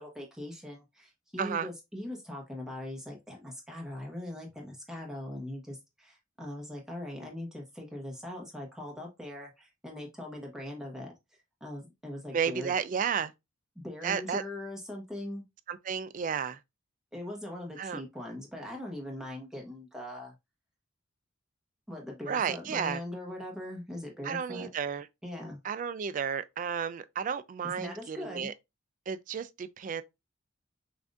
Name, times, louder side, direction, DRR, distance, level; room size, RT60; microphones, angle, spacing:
voice 1, 0.0-11.1 11.6-12.7 13.7-15.4 17.1-20.3 21.9-24.7 25.2-25.6 27.8-28.5, left 1 dB, 5° right, 1.1 m, -41 dB
voice 2, 1.4-1.7 12.3-13.3 14.0-14.4 15.7-16.6 17.8-18.0 22.3-23.0 24.2-25.1 25.6-28.5 29.1-30.0, right 7 dB, 40° right, 0.3 m, -32 dB
5.8 x 2.6 x 2.4 m
head